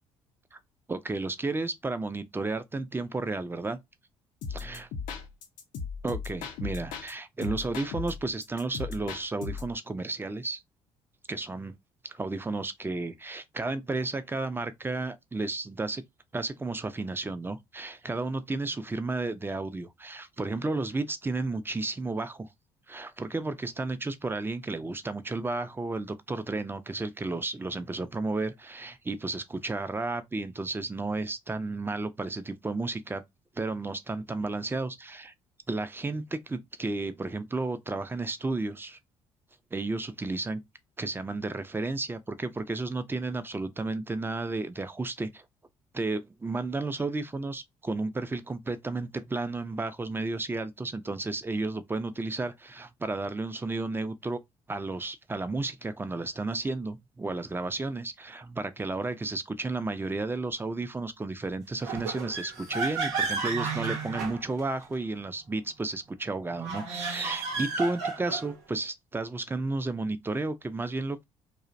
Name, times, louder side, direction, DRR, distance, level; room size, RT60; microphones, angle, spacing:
voice 1, 0.9-3.8 4.5-4.9 6.0-10.6 11.3-11.7 12.0-16.0 16.3-22.5 22.9-33.2 33.6-35.3 35.7-39.0 39.7-40.6 41.0-45.4 45.9-54.4 54.7-71.2, right 3 dB, 15° right, 0.4 m, -32 dB
sound 1, 4.4-7.1 7.4-9.7, left 5 dB, 65° left, 0.5 m, -37 dB
sound 2, 61.8-64.9 66.5-68.6, right 4 dB, 80° right, 0.6 m, -32 dB
2.5 x 2.0 x 2.4 m
hypercardioid pair, 50°, 15 cm